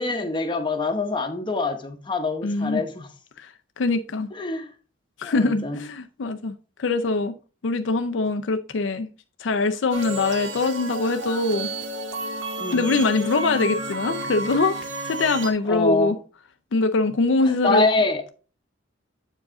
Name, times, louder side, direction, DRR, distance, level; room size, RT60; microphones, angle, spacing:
voice 1, 0.0-3.1 4.3-4.7 5.2-5.8 12.6-12.9 15.7-16.2 17.4-18.2, left 3 dB, 25° left, 1.0 m, -25 dB
voice 2, 2.4-2.8 3.4-3.5 3.8-4.3 5.2-7.4 7.6-9.1 9.4-11.7 12.7-14.8 15.0-16.2 16.7-17.8, left 3 dB, 70° left, 0.5 m, -23 dB
sound 1, 9.9-15.5, right 1 dB, 75° right, 1.1 m, -31 dB
7.7 x 4.8 x 3.7 m
head